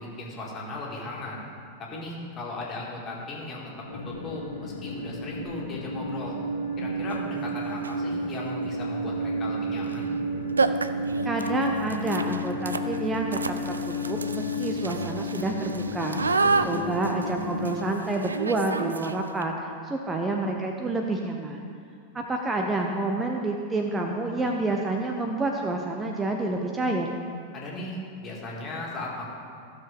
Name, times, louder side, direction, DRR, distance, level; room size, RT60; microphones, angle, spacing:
voice 1, 0.0-1.4 1.8-3.7 4.1-6.4 6.8-10.1 16.4-16.7 27.5-29.3, left 2 dB, 30° left, -3 dB, 2.1 m, -37 dB
sound 1, 3.9-17.7, equal, 65° left, 1.2 m, -31 dB
sound 2, 7.1-7.2 7.7-8.1 9.8-10.0 10.2-10.3 10.6-19.4, right 4 dB, 75° right, 0.3 m, -30 dB
voice 2, 11.2-16.2 16.6-21.6 22.1-27.1, right 2 dB, 15° right, 2 dB, 0.7 m, -29 dB
14.5 x 6.5 x 3.6 m, 2.3 s
figure-of-eight pair, 90°, 0 cm